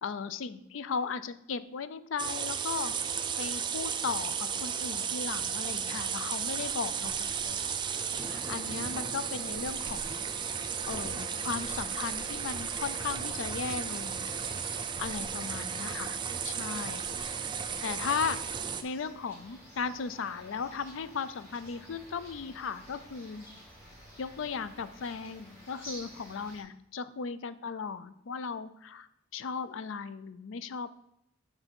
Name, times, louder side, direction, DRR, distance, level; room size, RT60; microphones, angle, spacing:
voice 1, 0.0-2.9 3.4-7.6 8.3-10.3 10.9-14.3 15.0-16.2 16.4-17.1 17.8-18.4 18.8-23.5 24.2-29.1 29.3-30.9, left 5 dB, 70° left, 14 dB, 0.4 m, -36 dB
sound 1, 2.2-18.8, right 7 dB, 25° right, 0.4 m, -34 dB
sound 2, 7.1-26.6, equal, 15° left, 2.4 m, -52 dB
7.2 x 3.4 x 5.3 m, 0.81 s
head